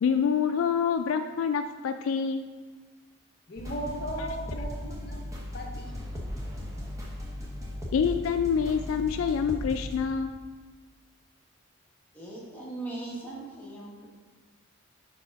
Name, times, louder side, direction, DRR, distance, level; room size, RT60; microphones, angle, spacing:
voice 1, 0.0-2.4 7.9-10.3, left 6 dB, 70° left, 8 dB, 0.3 m, -26 dB
voice 2, 3.5-5.2 5.5-5.9, right 1 dB, 45° left, 1 dB, 0.7 m, -36 dB
sound 1, 3.6-10.0, left 1 dB, 15° right, 0.9 m, -37 dB
voice 3, 12.1-14.1, right 2 dB, 10° left, -5 dB, 1.1 m, -39 dB
4.9 x 4.6 x 5.2 m, 1.4 s
head